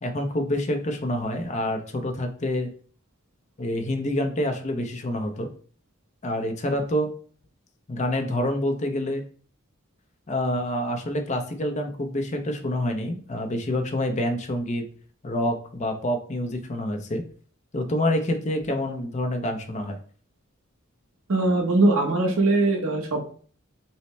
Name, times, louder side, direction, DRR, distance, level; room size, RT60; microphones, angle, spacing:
voice 1, 0.0-2.7 3.6-5.5 6.2-7.1 7.9-9.2 10.3-14.9 15.2-17.2 17.7-20.0, left 1 dB, 35° left, 5 dB, 0.6 m, -27 dB
voice 2, 21.3-23.2, right 2 dB, 85° right, 2 dB, 1.0 m, -21 dB
5.5 x 2.1 x 3.2 m, 0.43 s
head